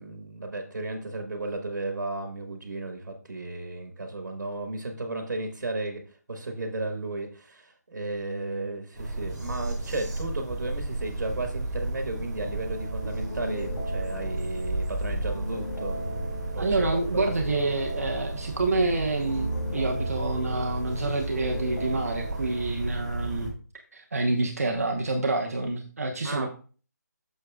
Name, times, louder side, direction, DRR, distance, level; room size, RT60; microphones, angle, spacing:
voice 1, 0.0-6.0 6.3-16.0 16.5-17.2 26.2-26.5, right 2 dB, 85° right, 3 dB, 1.5 m, -34 dB
sound 1, 9.0-23.5, right 2 dB, 10° right, 1.4 m, -33 dB
sound 2, 12.4-22.7, equal, 80° left, 1.4 m, -40 dB
voice 2, 16.6-23.5 23.9-26.5, right 2 dB, 55° right, 2 dB, 1.1 m, -28 dB
8.5 x 6.7 x 2.3 m, 0.39 s
hypercardioid pair, 180°, 10 cm